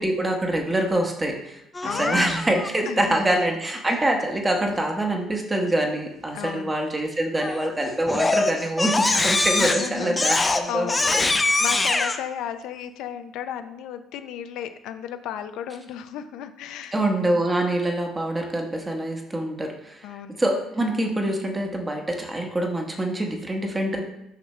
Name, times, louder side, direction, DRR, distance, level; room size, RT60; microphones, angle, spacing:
voice 1, 0.0-11.6 16.9-20.1 20.4-24.0, right 1 dB, 15° right, 2 dB, 1.0 m, -25 dB
Crying sobbing, 1.7-2.7 7.4-7.7 8.1-12.2, left 3 dB, 15° left, 0.5 m, -23 dB
voice 2, 1.8-2.2 2.9-3.2 6.3-6.7 9.5-17.0 20.0-20.4, left 9 dB, 75° left, 8 dB, 0.5 m, -34 dB
6.6 x 5.6 x 3.2 m, 0.87 s
cardioid pair, 135°, 0 cm